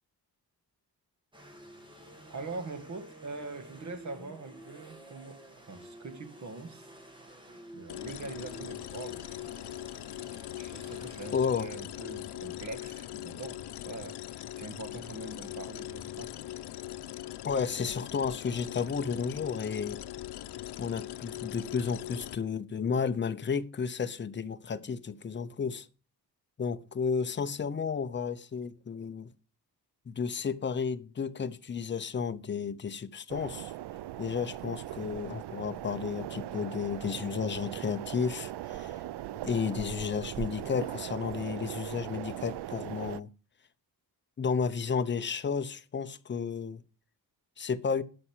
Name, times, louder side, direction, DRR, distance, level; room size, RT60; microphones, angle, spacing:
sound 1, 1.3-11.4, right 1 dB, 10° right, 2.3 m, -51 dB
voice 1, 2.3-6.9 7.7-9.3 10.6-16.3, right 3 dB, 45° right, 1.9 m, -43 dB
sound 2, 7.9-22.4, left 13 dB, 85° left, 0.7 m, -41 dB
voice 2, 11.3-11.7 17.4-20.1 20.8-25.9 26.6-29.3 30.1-33.7 34.2-38.9 39.4-43.3 44.4-46.8 47.6-48.0, left 6 dB, 30° left, 0.7 m, -32 dB
sound 3, 33.3-43.2, right 13 dB, 85° right, 0.6 m, -40 dB
12.0 x 5.7 x 8.4 m
wide cardioid pair, 170°, 39 cm